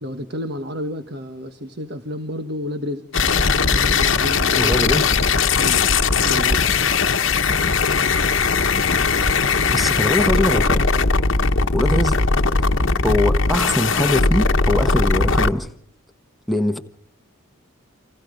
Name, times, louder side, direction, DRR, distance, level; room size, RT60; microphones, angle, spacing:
voice 1, 0.0-3.1 3.6-4.7 5.5-5.8 6.1-6.6, left 1 dB, 50° right, 1.4 m, -30 dB
sound 1, 3.1-15.5, left 4 dB, 60° left, 1.1 m, -19 dB
voice 2, 4.5-5.1 9.7-10.9 11.7-12.2 13.0-15.7 16.5-16.8, left 1 dB, ahead, 1.2 m, -22 dB
29.5 x 26.5 x 5.2 m
head